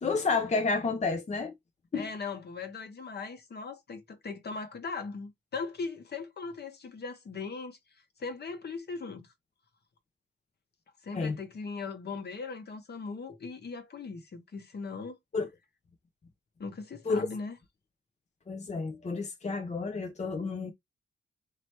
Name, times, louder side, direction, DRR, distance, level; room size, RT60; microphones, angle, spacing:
voice 1, 0.0-1.5 1.9-2.0 11.1-11.4 15.3-15.5 17.1-17.2 18.5-20.7, left 4 dB, 35° left, 0.7 m, -30 dB
voice 2, 1.9-7.8 8.2-9.3 11.0-15.2 16.6-17.6, left 4 dB, 50° left, 1.1 m, -39 dB
3.2 x 2.9 x 4.4 m
cardioid pair, 80°, 21 cm